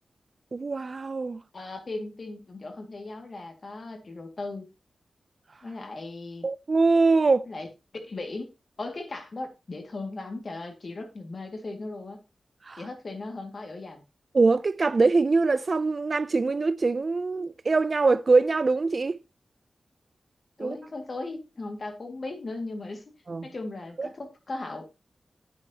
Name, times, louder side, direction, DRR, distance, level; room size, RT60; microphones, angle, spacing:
voice 1, 0.5-1.4 6.4-7.5 12.7-12.8 14.3-19.2 20.6-20.8 23.3-23.5 24.0-24.1, right 3 dB, 40° right, 0.4 m, -23 dB
voice 2, 1.5-4.7 5.6-6.5 7.5-7.7 8.0-8.5 8.8-12.2 12.8-14.0 20.6-24.9, left 2 dB, 45° left, 2.0 m, -37 dB
9.7 x 9.4 x 2.8 m
wide cardioid pair, 150°, 0 cm